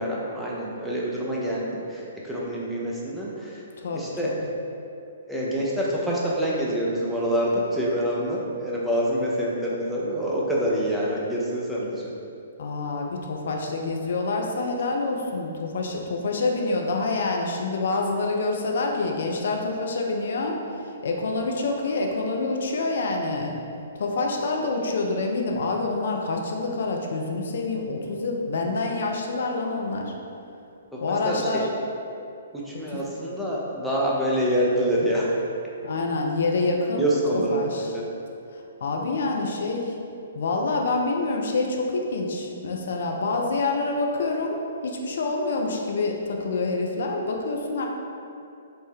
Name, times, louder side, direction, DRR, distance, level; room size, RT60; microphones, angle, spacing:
voice 1, 0.0-3.6 3.9-4.3 5.3-12.2 31.1-31.6 32.5-35.3 37.0-38.1, equal, ahead, -6 dB, 0.5 m, -26 dB
voice 2, 12.6-20.6 21.0-23.5 23.9-30.1 31.0-31.7 32.7-32.8 35.8-37.1 37.5-37.9 38.5-39.9 40.3-47.9, left 3 dB, 60° left, 1 dB, 0.3 m, -27 dB
2.8 x 2.1 x 3.4 m, 2.6 s
figure-of-eight pair, 120°, 0 cm